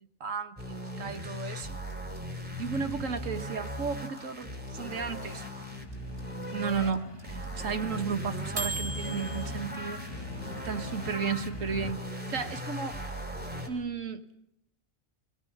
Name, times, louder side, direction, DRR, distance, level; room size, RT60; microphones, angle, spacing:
voice 1, 0.2-1.8 2.6-5.4 6.5-10.0 10.6-12.0 12.3-13.0 13.7-14.4, right 6 dB, 80° right, 7 dB, 1.7 m, -34 dB
sound 1, 0.6-6.9 7.2-13.7, equal, 5° right, 2.9 m, -38 dB
sound 2, 1.1-9.4, right 2 dB, 50° right, 4.8 m, -38 dB
sound 3, 4.2-11.9, left 2 dB, 20° left, 1.5 m, -45 dB
24.5 x 18.0 x 8.6 m, 0.80 s
omnidirectional pair, 1.3 m